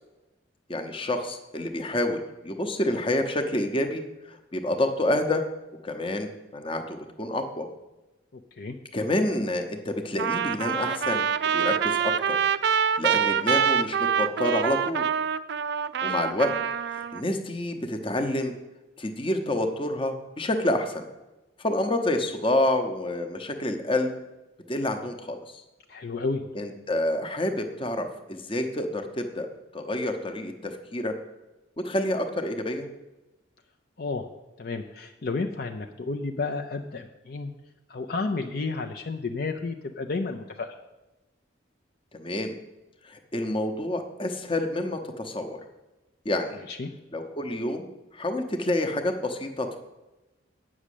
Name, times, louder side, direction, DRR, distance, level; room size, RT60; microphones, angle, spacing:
voice 1, 0.7-4.0 4.3-5.4 5.8-7.7 8.9-11.3 11.5-12.4 13.0-15.0 16.0-16.5 16.9-18.5 19.0-21.1 21.6-24.1 24.7-25.4 26.5-29.5 29.7-31.1 31.8-32.9 42.1-42.5 43.0-45.6 46.2-46.6 47.1-47.9 48.1-49.8, left 1 dB, 25° left, 6 dB, 0.9 m, -28 dB
voice 2, 8.3-8.7 25.9-26.4 34.0-34.3 34.6-37.5 37.9-40.7 46.7-46.9, left 3 dB, 50° left, 4 dB, 0.5 m, -31 dB
Trumpet, 10.2-17.2, right 7 dB, 55° right, 0.4 m, -25 dB
8.7 x 6.1 x 8.4 m, 1.0 s
head